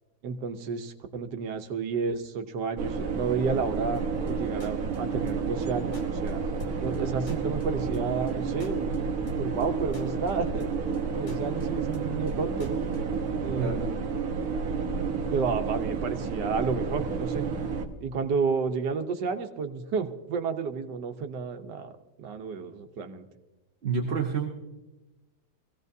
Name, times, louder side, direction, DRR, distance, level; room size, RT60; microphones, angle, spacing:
voice 1, 0.2-4.0 4.3-6.4 6.8-8.9 9.4-10.7 11.1-12.8 13.4-13.9 15.3-17.5 18.0-21.9 22.2-23.2, right 5 dB, 90° right, 7 dB, 1.6 m, -31 dB
sound 1, 2.8-17.9, right 5 dB, 65° right, 1.4 m, -30 dB
sound 2, 3.9-13.8, left 3 dB, 45° left, 1.7 m, -46 dB
voice 2, 13.6-13.9 23.8-24.5, right 5 dB, 45° right, 1 dB, 1.2 m, -29 dB
22.5 x 16.0 x 2.7 m, 1.1 s
omnidirectional pair, 1.8 m